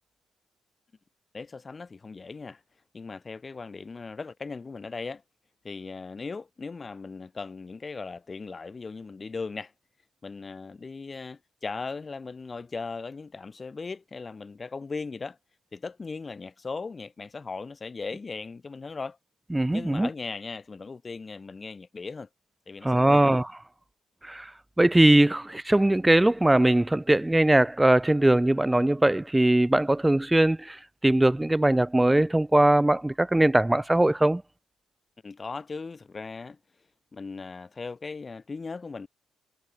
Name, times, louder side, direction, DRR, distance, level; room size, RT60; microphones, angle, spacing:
voice 1, 1.3-2.6 2.9-5.2 5.6-9.7 10.2-15.4 15.7-19.2 19.7-22.3 22.7-23.2 35.2-36.6 37.1-39.1, left 4 dB, 30° left, 5.9 m, -38 dB
voice 2, 19.5-20.1 22.8-23.5 24.2-24.5 24.8-30.8 31.0-34.4, right 1 dB, 10° right, 1.4 m, -21 dB
cardioid pair, 90°, 0 cm